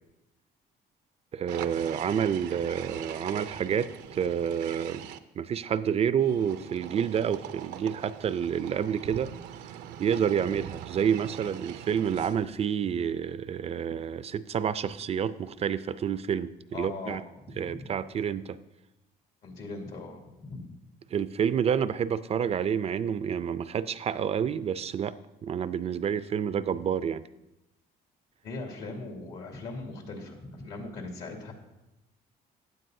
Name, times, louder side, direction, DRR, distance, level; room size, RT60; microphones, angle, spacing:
voice 1, 1.3-5.1 5.4-9.3 10.0-17.2 17.6-18.6 21.1-25.1 25.4-27.2, right 8 dB, 40° right, 14 dB, 0.4 m, -29 dB
sound 1, 1.5-5.2 6.2-12.6, right 10 dB, 90° right, 0.6 m, -42 dB
voice 2, 16.7-17.9 19.4-20.7 28.4-31.5, left 3 dB, 70° left, 0 dB, 2.5 m, -40 dB
15.5 x 9.3 x 2.7 m, 0.92 s
cardioid pair, 110°, 17 cm